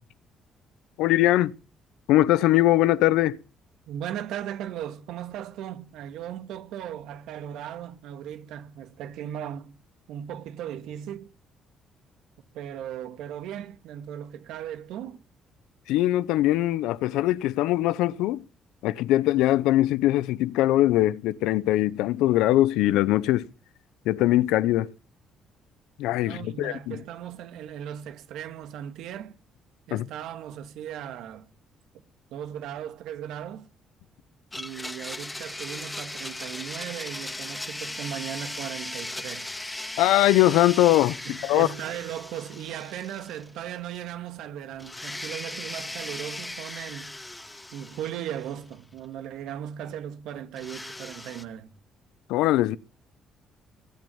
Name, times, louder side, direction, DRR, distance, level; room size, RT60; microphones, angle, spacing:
voice 1, 1.0-1.6 2.1-3.4 15.9-18.4 18.8-23.5 24.0-24.9 26.0-27.0 29.9-30.1 40.0-41.7 52.3-52.8, left 15 dB, 85° left, 0.8 m, -21 dB
voice 2, 3.9-9.8 10.1-11.3 12.5-15.2 26.2-29.4 29.9-31.5 32.3-33.7 34.5-39.5 41.2-47.2 47.7-51.7, right 10 dB, 80° right, 1.9 m, -37 dB
Domestic sounds home sounds, 34.5-43.7 43.9-44.0 44.8-48.7 50.6-51.4, left 1 dB, 15° left, 2.0 m, -38 dB
20.5 x 9.2 x 7.1 m
supercardioid pair, 75°, 0 cm